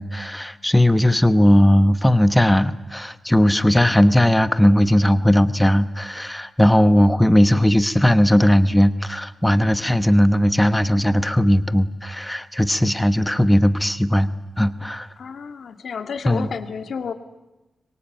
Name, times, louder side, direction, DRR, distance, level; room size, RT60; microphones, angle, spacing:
voice 1, 0.0-14.3 14.6-15.1 16.3-16.5, left 1 dB, 5° left, 13 dB, 1.0 m, -17 dB
voice 2, 15.2-17.1, left 6 dB, 75° left, 9 dB, 2.0 m, -31 dB
25.0 x 23.0 x 9.1 m, 1.0 s
wide cardioid pair, 165°, 0 cm